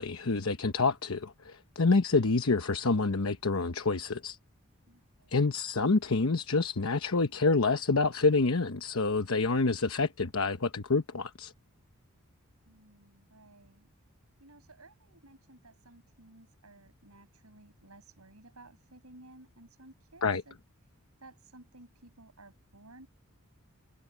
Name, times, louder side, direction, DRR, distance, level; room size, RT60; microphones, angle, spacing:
voice 1, 0.0-4.4 5.3-11.5 20.2-20.4, left 3 dB, 75° left, 1.0 m, -27 dB
voice 2, 4.9-5.4 12.6-13.9 14.4-20.5 20.8-23.1, right 2 dB, 85° right, 6.8 m, -56 dB
head